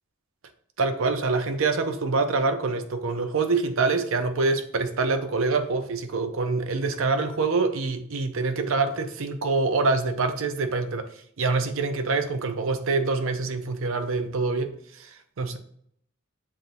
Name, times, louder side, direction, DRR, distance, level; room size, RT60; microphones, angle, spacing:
voice 1, 0.8-11.1 11.4-15.6, right 3 dB, 75° right, 7 dB, 0.6 m, -25 dB
7.4 x 2.6 x 2.6 m, 0.66 s
head